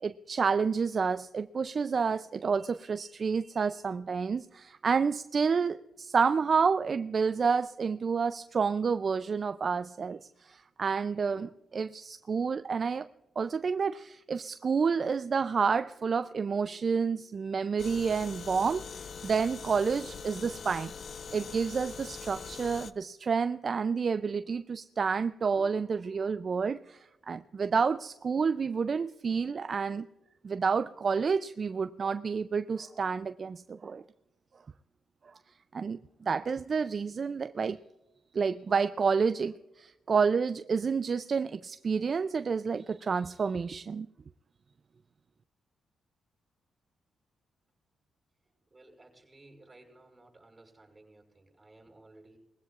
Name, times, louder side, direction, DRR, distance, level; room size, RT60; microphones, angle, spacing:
voice 1, 0.0-13.1 13.4-20.9 21.3-30.1 30.4-34.0 35.7-37.8 38.3-44.1, right 5 dB, 45° right, 11 dB, 0.4 m, -29 dB
sound 1, 17.8-22.9, left 6 dB, 55° left, 0.7 m, -43 dB
voice 2, 48.7-52.4, right 2 dB, 20° right, 2 dB, 5.6 m, -57 dB
21.0 x 16.0 x 2.4 m, 0.95 s
cardioid pair, 75°, 0 cm